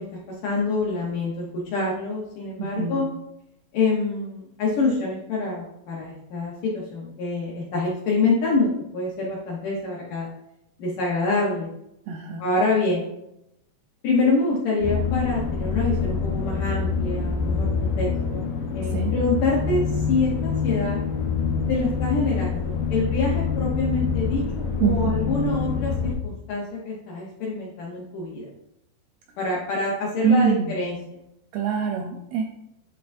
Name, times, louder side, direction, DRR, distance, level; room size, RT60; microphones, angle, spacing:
voice 1, 0.0-3.1 3.7-10.3 10.8-11.7 12.4-13.0 14.0-18.5 18.7-21.0 21.7-28.5 29.4-31.0, left 3 dB, 70° left, -4 dB, 2.0 m, -26 dB
voice 2, 2.6-3.0 12.1-12.4 18.9-19.1 24.8-25.2 30.2-30.7 31.5-32.4, right 6 dB, 80° right, 3 dB, 2.2 m, -24 dB
sound 1, 14.8-26.1, left 5 dB, 85° left, 1.9 m, -26 dB
10.5 x 3.9 x 2.6 m, 0.80 s
omnidirectional pair, 5.0 m